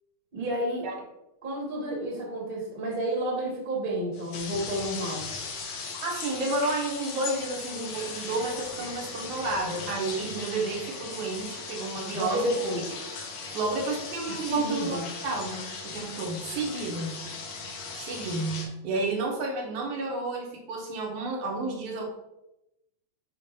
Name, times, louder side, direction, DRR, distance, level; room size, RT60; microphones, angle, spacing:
voice 1, 0.3-0.9 1.4-5.2 12.1-12.9 14.5-15.0, right 1 dB, 30° right, -3 dB, 1.0 m, -30 dB
sound 1, 4.1-18.7, left 4 dB, 75° left, 2.4 m, -38 dB
voice 2, 6.0-12.5 13.5-15.0 15.2-17.2 18.0-22.1, right 3 dB, 70° right, 0 dB, 2.2 m, -31 dB
7.4 x 2.5 x 5.3 m, 0.88 s
omnidirectional pair, 3.7 m